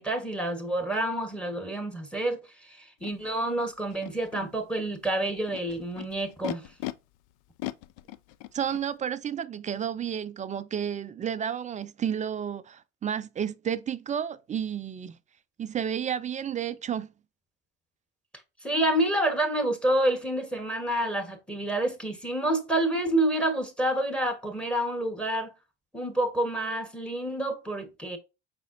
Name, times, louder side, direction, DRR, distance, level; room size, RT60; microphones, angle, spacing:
voice 1, 0.0-6.7 18.6-25.5 25.9-28.2, right 1 dB, 5° left, 1.2 m, -28 dB
Animal, 3.0-3.1 3.9-4.4 5.2-6.9 7.6-8.8, left 16 dB, 65° left, 0.5 m, -38 dB
voice 2, 8.5-15.2 15.6-17.1, right 8 dB, 20° right, 0.3 m, -31 dB
5.0 x 4.0 x 2.6 m
hypercardioid pair, 65°, 35 cm